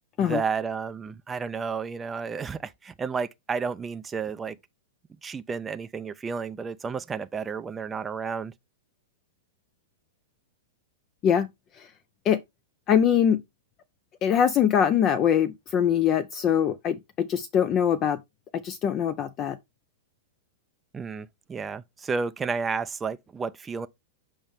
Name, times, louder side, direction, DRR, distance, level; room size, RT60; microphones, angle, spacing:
voice 1, 0.2-4.6 5.2-8.5 20.9-23.9, right 5 dB, 15° right, 0.4 m, -31 dB
voice 2, 12.9-13.4 14.2-18.2 18.5-19.6, left 8 dB, 35° left, 0.5 m, -23 dB
7.1 x 5.1 x 3.5 m
hypercardioid pair, 110°, 0 cm